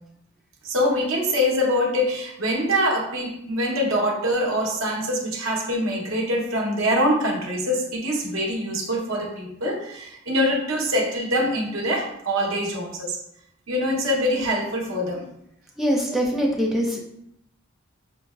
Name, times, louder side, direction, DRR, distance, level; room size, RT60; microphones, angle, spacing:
voice 1, 0.6-13.2 13.7-15.3, equal, 80° right, -1 dB, 0.9 m, -24 dB
voice 2, 15.8-17.0, equal, ahead, -2 dB, 0.5 m, -23 dB
5.9 x 2.1 x 2.3 m, 0.76 s
head